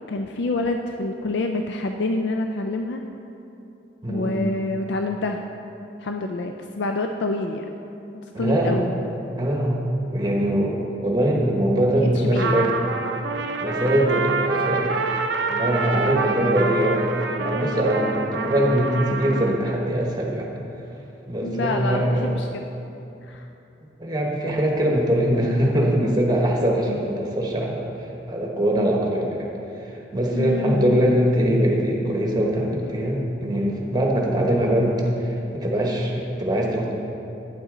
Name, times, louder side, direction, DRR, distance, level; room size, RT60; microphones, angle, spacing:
voice 1, 0.1-3.0 4.1-5.4 6.0-7.7 8.4-8.9 12.0-12.6 21.4-22.6 23.2-23.5 30.3-31.0, left 2 dB, 70° left, 4 dB, 0.4 m, -27 dB
voice 2, 4.0-4.4 8.3-8.9 9.4-12.8 13.6-15.0 15.5-20.5 21.3-22.4 24.0-27.8 28.3-29.5 29.8-36.9, right 1 dB, 20° right, -1 dB, 1.1 m, -22 dB
Trumpet, 12.4-19.6, right 4 dB, 70° right, 0.6 m, -27 dB
9.6 x 8.0 x 3.8 m, 2.9 s
head